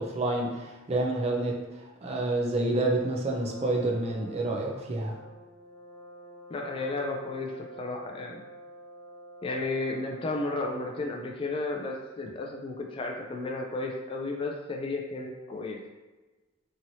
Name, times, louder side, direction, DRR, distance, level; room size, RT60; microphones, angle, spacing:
voice 1, 0.0-1.5 2.0-5.2, right 2 dB, 35° right, -1 dB, 0.5 m, -28 dB
Brass instrument, 3.3-11.1, right 1 dB, 80° left, 0.7 m, -48 dB
voice 2, 6.5-8.4 9.4-15.8, left 2 dB, 30° left, 1 dB, 0.3 m, -33 dB
3.0 x 2.8 x 2.7 m, 1.2 s
head